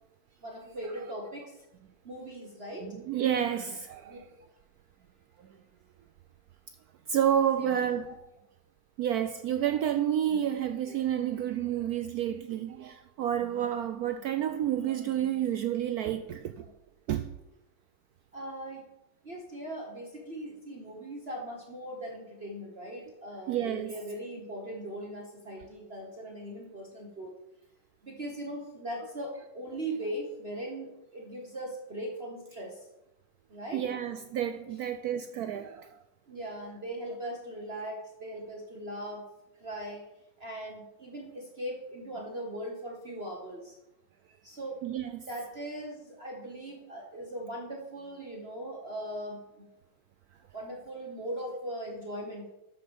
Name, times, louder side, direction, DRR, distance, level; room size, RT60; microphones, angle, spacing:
voice 1, 0.4-1.5 2.0-2.9 4.1-4.2 7.6-8.1 18.3-18.8 19.2-27.3 28.0-32.8 33.5-33.8 36.3-39.2 39.6-40.0 40.4-43.7 44.4-44.8 45.3-49.7 50.5-52.5, right 1 dB, 35° right, 1.4 m, -39 dB
voice 2, 2.8-4.3 7.1-8.1 9.0-16.6 17.1-17.3 23.5-23.9 33.7-35.9 44.8-45.3, right 10 dB, 75° right, 0.8 m, -30 dB
12.5 x 6.0 x 5.1 m
omnidirectional pair, 2.1 m